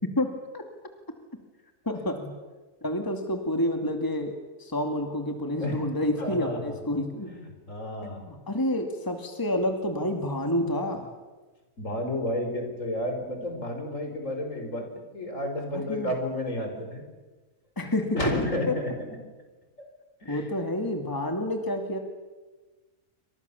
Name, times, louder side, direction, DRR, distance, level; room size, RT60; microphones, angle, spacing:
voice 1, 1.8-2.3 2.8-7.3 8.0-11.1 15.7-16.1 17.8-18.1 18.7-18.8 20.3-22.0, left 1 dB, 15° left, 4 dB, 2.3 m, -29 dB
voice 2, 5.6-5.9 6.2-6.7 7.3-7.4 7.7-8.3 11.8-17.0 18.1-18.9 19.8-19.9 20.2-20.4, left 1 dB, 60° left, 4 dB, 5.3 m, -31 dB
28.5 x 26.0 x 7.1 m, 1.3 s
omnidirectional pair, 1.5 m